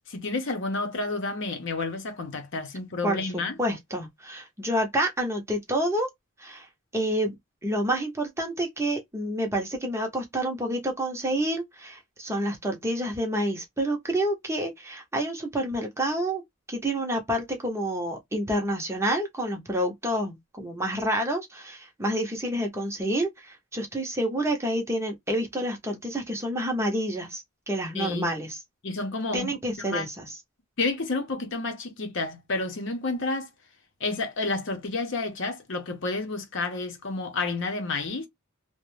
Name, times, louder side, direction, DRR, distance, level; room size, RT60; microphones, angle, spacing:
voice 1, 0.1-3.6 27.9-28.3 28.8-29.5 29.9-30.1 30.8-33.5 34.0-38.3, left 3 dB, 55° left, 0.7 m, -30 dB
voice 2, 3.0-6.1 6.4-6.7 6.9-7.3 7.6-16.4 16.7-28.6 29.3-30.4, right 1 dB, 10° right, 0.7 m, -28 dB
2.5 x 2.1 x 3.0 m
head